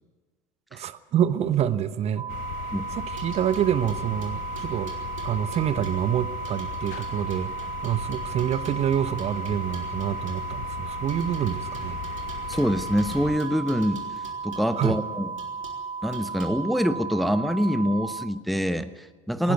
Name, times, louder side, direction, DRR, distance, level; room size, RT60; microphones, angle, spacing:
voice 1, 0.7-2.3 2.9-4.9 5.2-12.0 14.8-15.0 19.4-19.5, right 10 dB, 40° right, 14 dB, 1.1 m, -27 dB
sound 1, 2.2-18.3, right 5 dB, 25° right, 1.5 m, -35 dB
sound 2, 2.3-13.4, left 17 dB, 50° left, 0.7 m, -39 dB
sound 3, 3.2-6.1 6.4-10.5 11.1-14.9 15.4-15.8 16.1-16.5, right 4 dB, 80° right, 3.4 m, -47 dB
voice 2, 12.5-14.0 14.4-15.3 16.0-19.5, equal, ahead, 12 dB, 1.0 m, -25 dB
20.0 x 16.5 x 8.1 m, 1.3 s
figure-of-eight pair, 70°, 17 cm